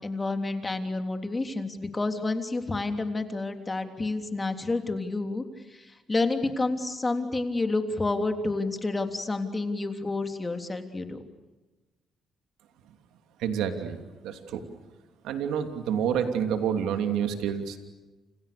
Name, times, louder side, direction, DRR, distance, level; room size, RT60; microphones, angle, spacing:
voice 1, 0.0-5.4 6.1-11.2, left 2 dB, 25° left, 6 dB, 3.4 m, -29 dB
voice 2, 13.4-14.0 14.2-14.6 15.2-17.8, right 8 dB, 90° right, 6 dB, 2.9 m, -28 dB
29.5 x 29.0 x 6.9 m, 1.2 s
cardioid pair, 90°, 0 cm